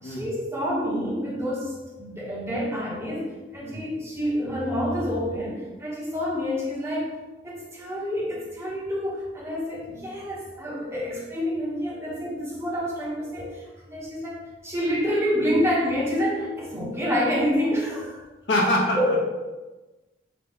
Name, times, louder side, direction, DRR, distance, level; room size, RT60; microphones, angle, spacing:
voice 1, 0.0-3.3 3.5-7.1 7.4-18.2 18.9-19.2, equal, 15° right, -5 dB, 0.9 m, -28 dB
voice 2, 18.5-19.2, left 1 dB, 65° left, -2 dB, 0.8 m, -24 dB
4.0 x 2.2 x 3.6 m, 1.1 s
head